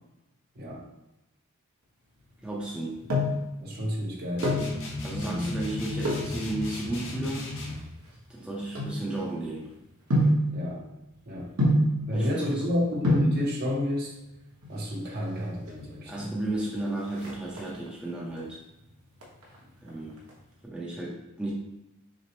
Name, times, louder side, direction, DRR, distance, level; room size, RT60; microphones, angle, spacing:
voice 1, 2.4-3.0 5.0-7.5 8.3-9.7 12.1-12.7 16.1-18.6 19.8-20.2 20.6-21.5, right 2 dB, 5° right, -5 dB, 0.5 m, -33 dB
sound 1, 2.7-3.5 4.2-4.8 6.0-6.4 7.1-9.5 10.1-10.5 11.6-12.0 12.7-12.8 13.0-13.4 14.5-15.1 15.4-15.5 15.7-15.8 16.2-16.6 16.9-17.9 18.4-18.8 19.2-20.3 20.6-20.7, equal, 80° right, 1.1 m, -26 dB
voice 2, 3.6-4.7 5.2-5.5 10.5-10.8 11.3-11.5 12.1-14.2 14.7-16.3, left 1 dB, 45° right, -1 dB, 0.8 m, -31 dB
sound 2, 4.4-7.9, left 2 dB, 60° left, 0.8 m, -35 dB
6.1 x 2.0 x 3.0 m, 0.92 s
head